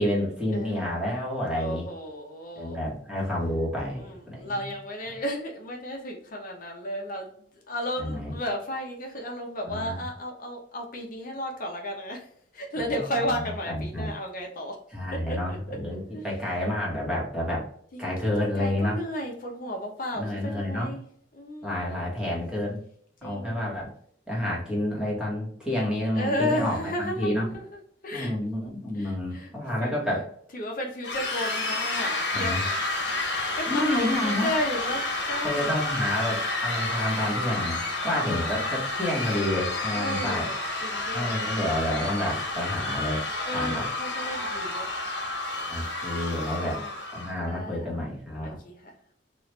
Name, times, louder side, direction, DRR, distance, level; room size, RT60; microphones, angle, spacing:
voice 1, 0.0-1.8 2.6-4.6 8.0-8.3 9.7-10.0 12.7-12.9 13.7-14.1 14.9-17.7 18.0-19.0 20.1-20.9 21.6-22.8 23.2-23.9 24.3-27.5 28.1-30.3 32.3-32.6 33.7-34.5 35.4-40.5 41.1-43.9 45.7-46.8 47.1-48.6, left 1 dB, 5° right, -4 dB, 1.2 m, -29 dB
voice 2, 0.5-1.0 1.5-2.8 4.0-7.3 7.7-12.3 12.5-14.8 15.1-15.8 16.1-16.3 17.9-18.1 18.4-21.0 21.3-21.9 23.2-23.7 26.1-27.6 28.0-28.3 28.9-29.5 29.8-29.9 30.5-33.2 33.5-35.8 39.9-41.6 43.4-45.3 46.3-46.9 47.4-48.0 48.4-48.9, equal, 50° left, 1 dB, 0.7 m, -34 dB
sound 1, 31.0-47.3, left 2 dB, 75° left, 1.1 m, -30 dB
3.1 x 2.4 x 3.1 m, 0.64 s
head